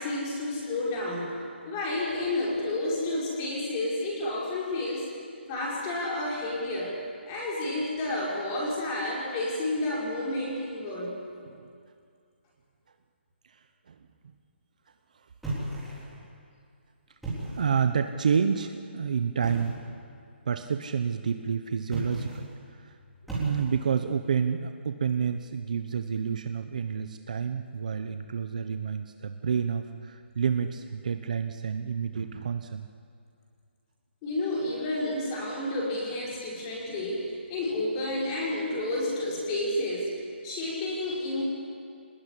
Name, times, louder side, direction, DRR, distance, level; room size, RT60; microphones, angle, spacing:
voice 1, 0.0-1.3 1.7-5.1 5.5-7.0 7.3-11.1 34.2-40.1 40.4-41.4, left 1 dB, 15° left, -4 dB, 5.2 m, -30 dB
voice 2, 11.4-11.7 13.5-14.0 15.1-15.3 17.5-19.8 20.4-22.9 23.3-32.9, right 6 dB, 40° right, 8 dB, 0.9 m, -29 dB
sound 1, 15.4-16.2 17.1-17.8 19.4-19.9 21.8-22.5 23.3-24.0, right 1 dB, ahead, 3.8 m, -35 dB
26.0 x 19.5 x 10.0 m, 2.3 s
hypercardioid pair, 175°, 6 cm